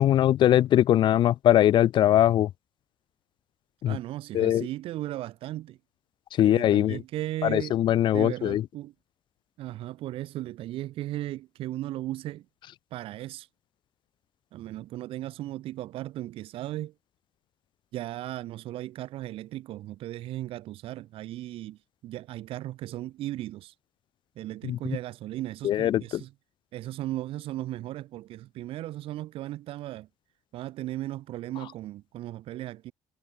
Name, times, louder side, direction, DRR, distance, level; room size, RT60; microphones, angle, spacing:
voice 1, 0.0-2.5 3.8-4.0 4.3-4.7 6.4-7.0 7.4-8.6 24.6-24.8 25.6-26.2, left 12 dB, 55° left, 0.4 m, -21 dB
voice 2, 3.9-5.8 6.4-7.8 8.1-8.9 9.6-12.5 12.9-13.5 14.5-16.9 17.9-23.7 24.4-26.3 26.7-30.1 30.5-32.9, right 15 dB, 70° right, 2.1 m, -36 dB
supercardioid pair, 75°, 10 cm